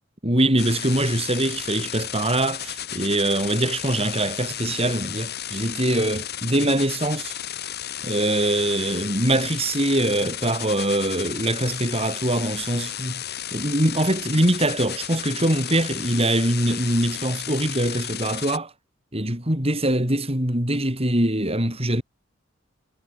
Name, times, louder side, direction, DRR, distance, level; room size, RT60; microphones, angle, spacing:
voice 1, 0.2-7.4 8.0-13.2 13.5-18.7 19.1-22.0, right 1 dB, 30° right, 6.8 m, -23 dB
sound 1, 0.6-18.6, left 11 dB, 50° left, 3.6 m, -33 dB
head